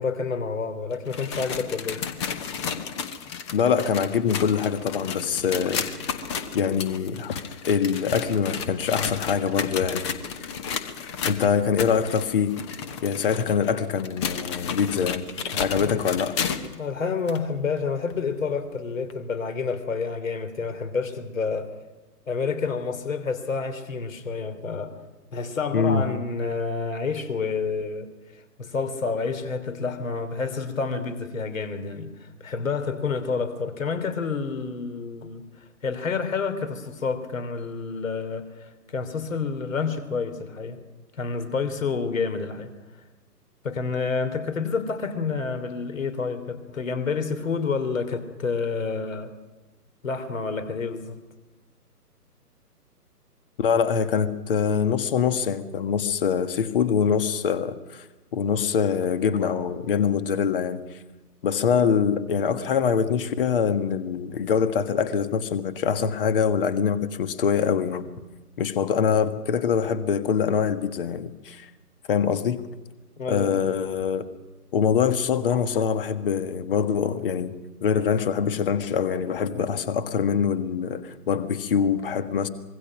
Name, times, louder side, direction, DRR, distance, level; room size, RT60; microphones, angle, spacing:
voice 1, 0.0-2.0 15.8-16.0 16.8-21.7 22.3-24.9 25.3-28.1 28.6-35.4 35.8-40.8 41.2-42.7 43.6-49.3 50.0-51.2 73.2-73.6, left 5 dB, 55° left, 10 dB, 3.5 m, -29 dB
sound 1, 0.9-16.8 17.3-17.4 18.1-18.2 19.1-19.2, left 7 dB, 20° left, 1.1 m, -33 dB
voice 2, 3.5-6.2 6.5-7.4 7.6-10.1 10.4-10.5 11.2-12.5 13.0-16.4 25.7-26.0 53.6-58.1 58.3-61.0 61.4-68.1 68.6-71.7 72.1-72.6 73.3-74.3 74.7-77.5 77.8-82.5, left 7 dB, 35° left, 12 dB, 1.6 m, -24 dB
25.0 x 23.0 x 6.1 m, 1.2 s
figure-of-eight pair, 135°, 47 cm